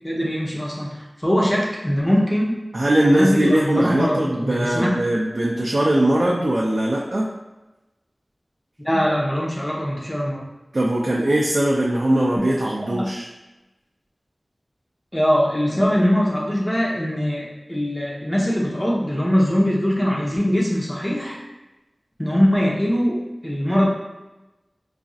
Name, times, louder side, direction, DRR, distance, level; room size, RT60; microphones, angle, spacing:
voice 1, 0.0-0.9 1.2-2.6 3.0-4.9 8.8-10.5 12.8-13.1 15.1-21.4 22.2-23.9, equal, 20° left, -4 dB, 0.8 m, -21 dB
voice 2, 2.7-7.3 10.7-13.3, right 1 dB, 55° right, -4 dB, 0.4 m, -20 dB
4.0 x 2.5 x 2.4 m, 1.0 s
wide cardioid pair, 60°, 0 cm